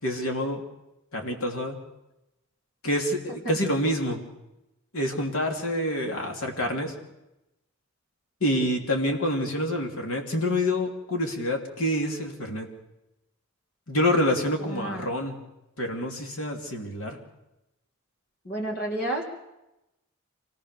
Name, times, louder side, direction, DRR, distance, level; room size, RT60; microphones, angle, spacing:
voice 1, 0.0-0.6 1.1-1.8 2.8-4.2 4.9-6.9 8.4-12.7 13.9-15.4 15.8-17.2, left 1 dB, 85° left, 3 dB, 3.1 m, -27 dB
voice 2, 14.6-15.1 18.4-19.2, right 1 dB, 45° left, -1 dB, 3.6 m, -31 dB
26.0 x 17.5 x 6.9 m, 0.93 s
head